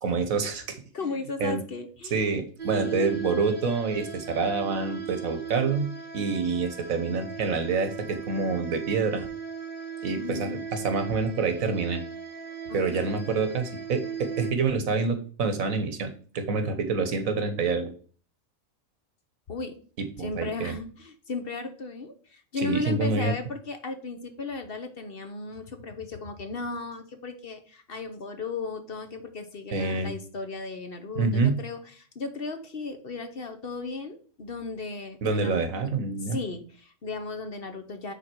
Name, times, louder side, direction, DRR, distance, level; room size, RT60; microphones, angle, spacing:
voice 1, 0.0-0.8 1.4-1.6 2.1-9.3 10.0-12.0 12.7-17.9 20.2-20.7 22.6-23.3 29.7-30.1 31.1-31.6 35.2-36.4, right 4 dB, 80° right, 8 dB, 1.5 m, -27 dB
voice 2, 0.9-2.3 2.7-3.2 10.2-10.7 12.7-13.2 19.5-19.8 20.2-35.6 36.2-38.1, left 4 dB, 50° left, 7 dB, 1.1 m, -36 dB
sound 1, 2.6-14.5, right 6 dB, 45° right, 1.1 m, -37 dB
9.7 x 3.8 x 4.6 m, 0.41 s
omnidirectional pair, 1.4 m